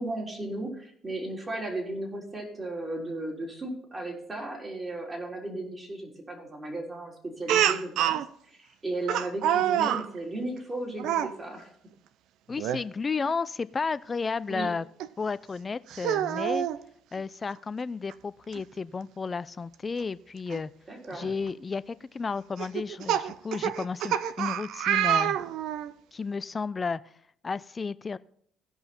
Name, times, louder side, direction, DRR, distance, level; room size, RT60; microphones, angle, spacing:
voice 1, 0.0-8.2 8.5-11.7 14.5-14.7 20.9-21.3, right 2 dB, 30° right, 0 dB, 3.8 m, -35 dB
Speech, 7.5-8.2 9.1-10.0 11.0-11.3 12.6-12.8 13.2-13.3 15.0-15.1 15.9-16.8 18.1-18.2 18.5-18.6 20.5-20.6 21.2-21.5 22.6-25.9, right 10 dB, 75° right, 0.5 m, -27 dB
voice 2, 12.5-14.9 15.2-16.7 17.1-20.7 21.1-25.4 26.1-27.0 27.4-28.2, left 4 dB, 35° left, 17 dB, 0.5 m, -32 dB
16.5 x 5.6 x 4.4 m, 0.64 s
supercardioid pair, 65°, 0 cm